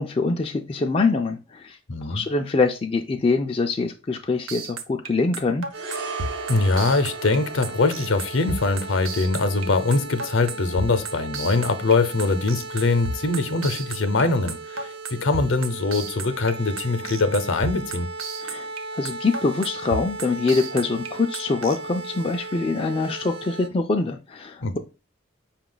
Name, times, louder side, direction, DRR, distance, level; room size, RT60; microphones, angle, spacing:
voice 1, 0.0-5.7 18.4-18.7 18.9-24.8, left 3 dB, 30° left, 3 dB, 0.3 m, -24 dB
voice 2, 1.9-2.2 6.5-18.1 24.6-24.8, left 3 dB, 70° left, 11 dB, 0.7 m, -23 dB
sound 1, 4.5-21.8, right 3 dB, 85° right, 0.7 m, -32 dB
sound 2, 5.7-23.7, right 3 dB, 50° right, 0.5 m, -37 dB
sound 3, 5.7-14.2 14.4-14.6, right 4 dB, 65° right, 1.1 m, -40 dB
5.5 x 2.4 x 3.8 m, 0.30 s
head